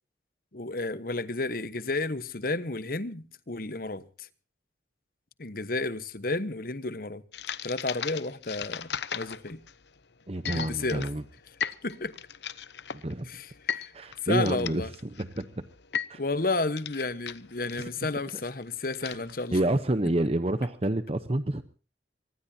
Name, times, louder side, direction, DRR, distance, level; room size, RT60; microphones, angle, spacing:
voice 1, 0.5-4.3 5.4-7.2 7.6-9.6 10.5-11.1 11.8-12.1 13.2-13.9 14.2-14.9 16.2-19.6, left 3 dB, 55° left, 1.1 m, -32 dB
sound 1, 7.3-19.6, left 8 dB, 75° left, 0.9 m, -37 dB
voice 2, 10.3-11.2 12.9-13.3 13.9-14.8 15.2-15.5 16.1-16.2 19.0-19.1 19.5-21.6, right 1 dB, 35° right, 0.9 m, -28 dB
24.0 x 20.0 x 2.8 m
head